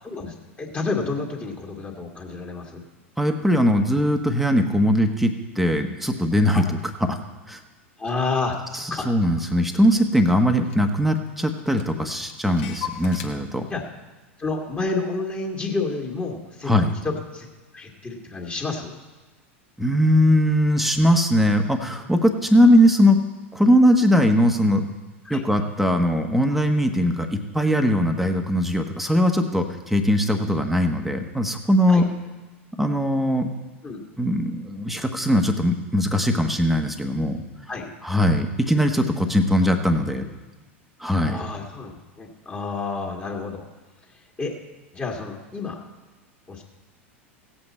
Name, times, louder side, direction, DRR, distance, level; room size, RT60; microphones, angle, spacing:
voice 1, 0.0-2.8 6.5-6.6 8.0-9.1 13.7-13.8 14.4-16.7 17.0-17.5 17.7-18.9 25.3-25.4 31.9-32.1 33.8-34.0 37.7-37.9 41.2-43.6 44.4-44.5 44.9-45.8 46.5-46.6, left 3 dB, 20° left, -1 dB, 2.0 m, -30 dB
voice 2, 3.2-6.8 7.1-7.2 7.5-7.6 8.7-13.6 16.7-16.9 19.8-23.2 23.5-24.9 25.3-32.1 32.8-33.5 34.2-37.4 38.0-40.2 41.0-41.4, equal, ahead, 5 dB, 1.2 m, -20 dB
Clock, 8.1-8.2 8.5-10.0 10.3-10.4 10.6-11.3 11.6-13.3, left 11 dB, 65° left, 1.4 m, -39 dB
16.5 x 8.0 x 4.3 m, 1.2 s
hypercardioid pair, 90°, 7 cm